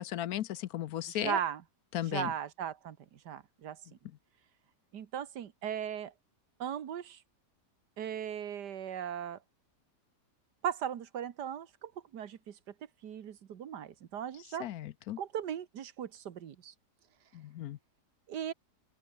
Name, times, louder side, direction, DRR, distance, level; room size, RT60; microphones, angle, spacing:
voice 1, 0.0-1.4 1.9-2.3 14.6-15.2 17.3-17.8, left 12 dB, 70° left, 1.1 m, -36 dB
voice 2, 1.1-1.6 2.1-3.8 4.9-6.1 6.6-7.2 8.0-9.4 10.6-12.6 13.0-14.7 15.2-16.7 18.3-18.5, right 9 dB, 90° right, 1.8 m, -38 dB
open air
omnidirectional pair, 1.7 m